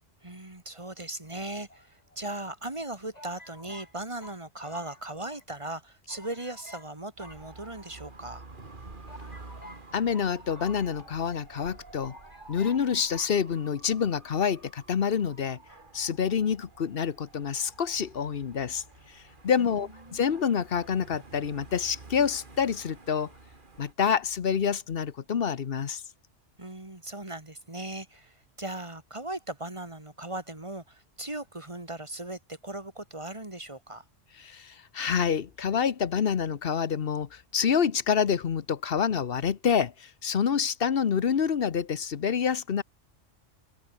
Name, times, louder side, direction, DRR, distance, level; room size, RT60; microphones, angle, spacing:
voice 1, 0.2-8.5 19.6-20.4 26.6-34.0, right 2 dB, 25° right, 3.0 m, -38 dB
sound 1, 1.7-2.4 3.1-5.4 5.7-5.8 6.1-6.9 7.2-8.2 8.7-8.8 9.1-11.4 11.6-11.7 12.0-12.8 13.1-13.3, left 1 dB, 30° left, 8.3 m, -50 dB
Dog / Motorcycle, 7.2-23.9, right 3 dB, 40° right, 2.5 m, -50 dB
voice 2, 9.9-12.1 12.5-15.6 15.9-23.3 23.8-26.0 34.4-42.8, left 7 dB, 50° left, 1.1 m, -27 dB
omnidirectional pair, 1.3 m